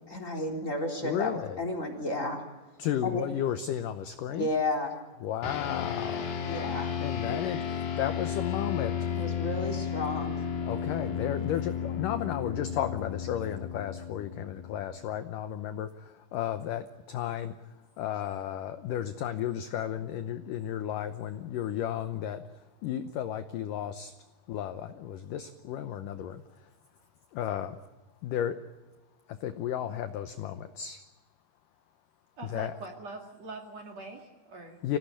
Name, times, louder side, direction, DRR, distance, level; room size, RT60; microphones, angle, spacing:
voice 1, 0.1-2.4 3.0-3.2 4.3-4.9 6.4-6.9 7.2-7.4 9.1-10.4, left 2 dB, 20° left, 5 dB, 3.7 m, -32 dB
voice 2, 1.0-1.6 2.8-4.5 5.2-8.9 10.6-24.1 24.5-26.7 27.3-27.8 28.2-28.6 29.3-31.0 32.4-32.7 34.8-35.0, left 10 dB, 75° left, 9 dB, 2.0 m, -34 dB
sound 1, 5.4-15.1, left 7 dB, 55° left, 3.3 m, -33 dB
voice 3, 32.4-34.8, right 3 dB, 45° right, 2 dB, 3.0 m, -43 dB
26.0 x 17.5 x 8.6 m, 1.2 s
omnidirectional pair, 4.8 m